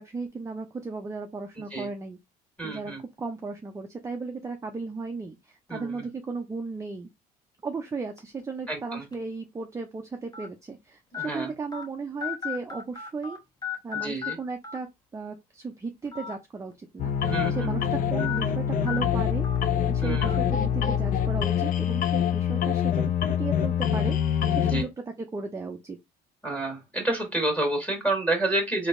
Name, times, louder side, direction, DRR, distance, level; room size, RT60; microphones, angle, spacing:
voice 1, 0.0-2.2 2.6-2.9 3.2-7.1 7.6-13.4 13.8-14.9 15.1-19.5 19.9-23.1 23.4-25.0 25.3-26.0, right 4 dB, 15° right, 0.5 m, -35 dB
voice 2, 2.6-3.0 5.7-6.1 8.7-9.0 11.1-11.5 13.9-14.4 17.2-17.7 20.0-20.3 24.7-24.9 26.4-28.9, right 2 dB, 10° left, 1.7 m, -29 dB
sound 1, 8.2-8.4 9.1-9.2 10.3-10.5 11.1-11.3 11.7-11.8 12.2-13.4 13.6-14.3 14.6-14.8 16.0-16.3 16.7-16.8 18.2-18.4 18.9-19.0 19.4-19.6 20.2-20.4, left 9 dB, 25° left, 0.9 m, -34 dB
sound 2, 17.0-24.8, left 9 dB, 50° left, 0.4 m, -25 dB
3.4 x 2.8 x 2.5 m
cardioid pair, 110°, 17 cm